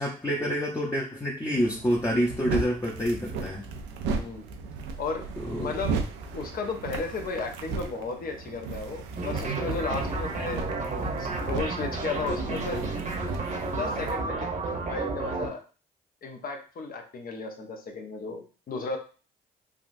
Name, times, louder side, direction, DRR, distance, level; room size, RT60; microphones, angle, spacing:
voice 1, 0.0-3.6 5.4-5.7, equal, 15° left, -2 dB, 0.8 m, -27 dB
sound 1, 1.6-14.1, right 4 dB, 80° right, 0.5 m, -36 dB
voice 2, 4.1-4.5 5.0-5.3 5.5-6.0 6.3-10.7 11.2-12.8 13.7-14.5 14.8-15.6 16.2-19.0, left 4 dB, 50° left, 4 dB, 0.8 m, -34 dB
sound 2, 9.2-15.5, right 3 dB, 40° right, 1.0 m, -31 dB
3.5 x 2.4 x 2.6 m, 0.37 s
supercardioid pair, 60°, 19 cm